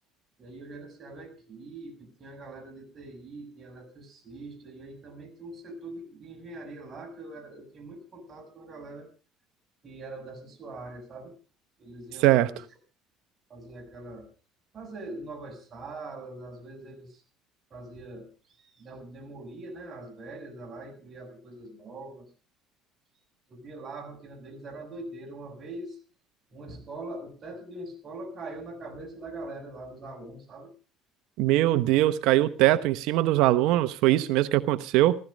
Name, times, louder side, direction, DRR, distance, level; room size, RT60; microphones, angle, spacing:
voice 1, 0.4-9.1 9.8-11.4 11.8-12.6 13.5-14.3 14.7-17.2 17.7-22.3 23.5-26.0 26.5-30.7, right 2 dB, 35° right, 4 dB, 6.8 m, -42 dB
voice 2, 31.4-35.2, right 15 dB, 75° right, 13 dB, 0.9 m, -22 dB
15.5 x 15.5 x 5.1 m, 0.38 s
cardioid pair, 115°, 0 cm